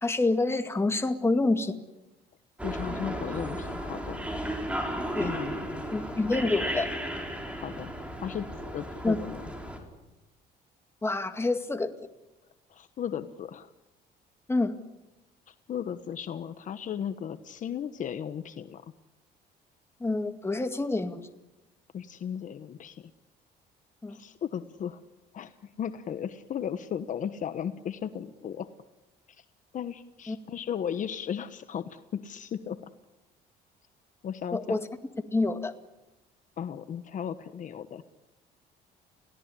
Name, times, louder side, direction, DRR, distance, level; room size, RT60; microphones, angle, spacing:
voice 1, 0.0-1.8 5.1-5.3 5.9-6.9 9.0-9.2 11.0-11.9 14.5-14.7 20.0-21.2 24.0-24.2 30.3-30.4 34.5-34.8 35.3-35.7, left 2 dB, 15° left, 7 dB, 2.0 m, -27 dB
voice 2, 2.6-4.2 5.2-5.8 7.5-9.5 12.7-13.7 15.5-18.8 21.9-23.1 24.1-25.0 25.3-28.7 29.3-29.4 29.7-32.8 34.2-34.8 36.6-38.0, left 8 dB, 50° left, 10 dB, 1.2 m, -36 dB
sound 1, 2.6-9.8, right 1 dB, 5° right, 5.0 m, -34 dB
30.0 x 17.0 x 9.9 m, 1.0 s
cardioid pair, 110°, 17 cm